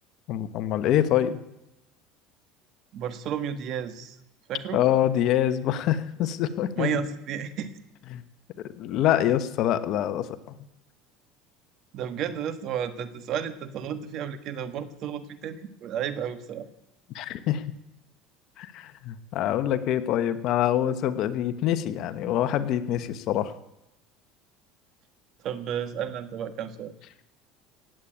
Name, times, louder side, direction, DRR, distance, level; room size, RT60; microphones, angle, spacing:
voice 1, 0.3-1.4 4.7-6.9 8.1-8.2 8.6-10.3 17.1-17.6 18.6-23.5, left 11 dB, 55° left, 12 dB, 1.1 m, -25 dB
voice 2, 2.9-4.2 4.5-4.8 6.8-7.7 11.9-16.7 25.4-26.9, right 8 dB, 50° right, 11 dB, 1.4 m, -32 dB
17.0 x 8.6 x 8.8 m, 0.89 s
supercardioid pair, 125°, 0 cm